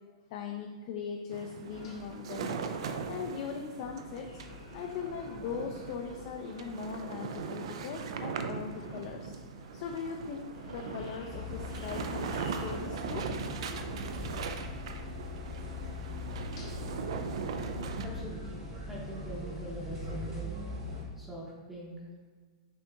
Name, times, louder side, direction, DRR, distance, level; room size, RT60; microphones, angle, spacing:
voice 1, 0.3-2.5 3.1-4.3 4.7-9.4 9.7-13.3, left 6 dB, 45° left, 2 dB, 0.3 m, -40 dB
sound 1, 1.3-18.1, right 5 dB, 65° right, 0.3 m, -40 dB
sound 2, 1.7-19.4, left 2 dB, 75° left, 1.1 m, -53 dB
sound 3, 11.2-21.0, left 2 dB, 25° right, 1.2 m, -40 dB
voice 2, 18.0-20.5 21.2-21.9, right 1 dB, 10° right, -5 dB, 0.7 m, -43 dB
6.0 x 2.8 x 2.3 m, 1.5 s
hypercardioid pair, 145°, 3 cm